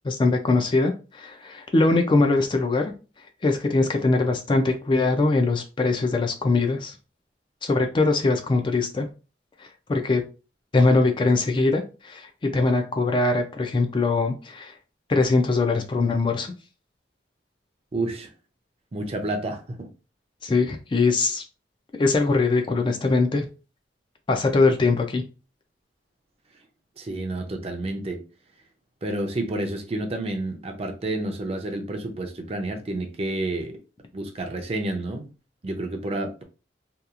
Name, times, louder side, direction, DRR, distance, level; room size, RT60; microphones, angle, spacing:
voice 1, 0.0-2.9 3.4-7.0 7.6-9.1 9.6-10.2 10.7-14.8 15.1-16.5 20.4-21.4 21.9-23.5 24.3-25.2, left 3 dB, 30° left, 0.3 m, -22 dB
voice 2, 17.9-18.3 18.9-19.9 27.0-28.2 29.0-33.8 34.1-35.3 35.6-36.4, right 2 dB, 35° right, 0.5 m, -30 dB
2.8 x 2.3 x 2.4 m
head